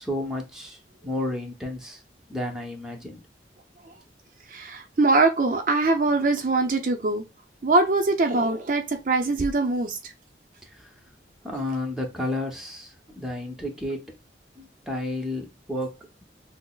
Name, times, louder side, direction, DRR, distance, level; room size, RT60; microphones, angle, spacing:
voice 1, 0.0-2.0 2.3-3.2 10.7-10.9 11.4-14.1 14.6-16.2, left 1 dB, 5° right, 0.7 m, -32 dB
voice 2, 4.5-7.2 7.6-10.0, right 3 dB, 50° right, 0.5 m, -22 dB
5.9 x 2.0 x 2.3 m
head